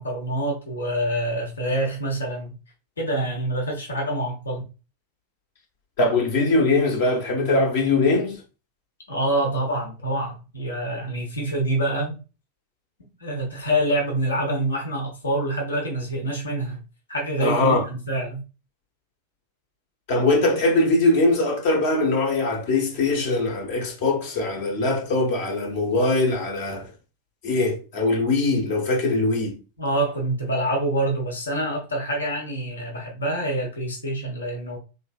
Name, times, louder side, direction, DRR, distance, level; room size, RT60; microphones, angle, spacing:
voice 1, 0.0-2.5 3.0-4.6 9.1-12.2 13.2-16.8 17.1-18.4 29.8-34.8, right 1 dB, 70° left, 1.1 m, -26 dB
voice 2, 6.0-8.4 17.4-17.8 20.1-26.9 27.4-29.5, left 2 dB, 50° left, 1.1 m, -21 dB
3.8 x 3.1 x 2.3 m
figure-of-eight pair, 90°, 0 cm